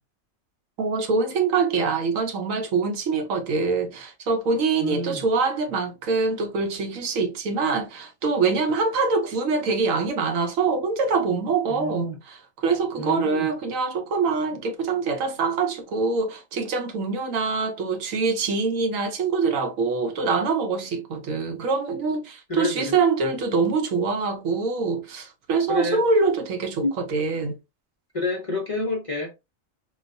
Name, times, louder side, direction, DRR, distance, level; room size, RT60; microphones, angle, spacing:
voice 1, 0.8-12.4 12.6-27.6, right 4 dB, 80° right, 1.1 m, -24 dB
voice 2, 4.8-5.3 11.7-12.2 13.0-13.5 22.5-23.0 25.7-26.0 26.8-27.0 27.4-27.5 28.1-29.3, left 2 dB, 35° left, 0.6 m, -29 dB
3.8 x 2.3 x 2.5 m
omnidirectional pair, 1.4 m